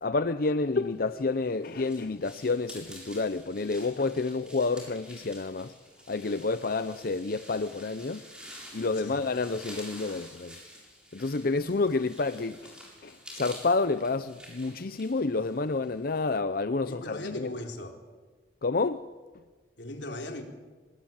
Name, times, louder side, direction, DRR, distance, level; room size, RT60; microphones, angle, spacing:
voice 1, 0.0-5.7 6.1-8.3 8.7-10.6 11.1-12.7 13.0-17.5 18.6-19.0, left 3 dB, 55° left, 0.7 m, -29 dB
sound 1, 1.0-16.2, equal, 5° right, 7.3 m, -49 dB
voice 2, 16.8-18.0 19.8-20.4, left 1 dB, 85° left, 3.7 m, -38 dB
25.5 x 19.5 x 8.9 m
head